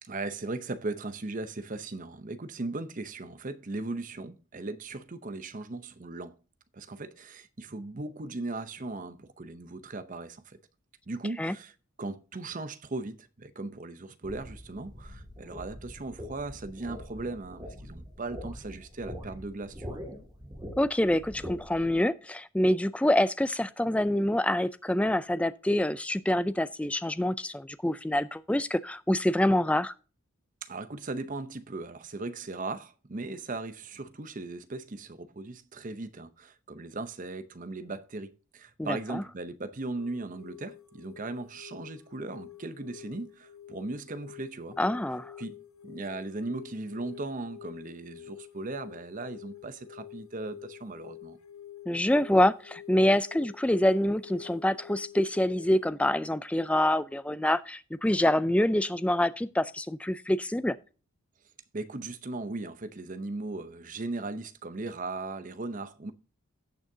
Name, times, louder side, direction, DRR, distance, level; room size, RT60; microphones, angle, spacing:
voice 1, 0.0-6.3 6.7-10.6 11.1-11.7 12.0-20.0 30.6-44.8 45.4-45.6 45.8-51.4 61.7-66.1, right 2 dB, 35° right, 0.7 m, -38 dB
sound 1, 14.2-21.9, equal, 20° right, 2.6 m, -43 dB
voice 2, 20.8-29.9 38.8-39.2 44.8-45.3 51.9-60.8, left 1 dB, 5° left, 0.3 m, -26 dB
sound 2, 40.0-55.9, left 11 dB, 85° left, 1.2 m, -48 dB
17.0 x 6.3 x 2.7 m
head